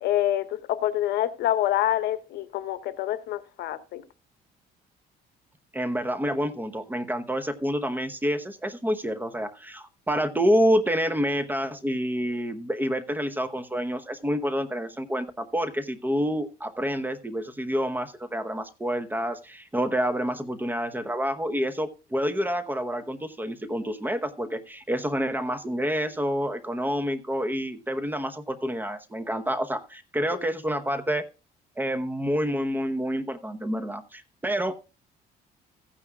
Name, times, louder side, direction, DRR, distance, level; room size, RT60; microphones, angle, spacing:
voice 1, 0.0-4.0, left 12 dB, 75° left, 0.9 m, -26 dB
voice 2, 5.7-31.2 31.8-34.8, equal, 10° right, 0.9 m, -28 dB
15.0 x 9.7 x 2.3 m
cardioid pair, 110°, 17 cm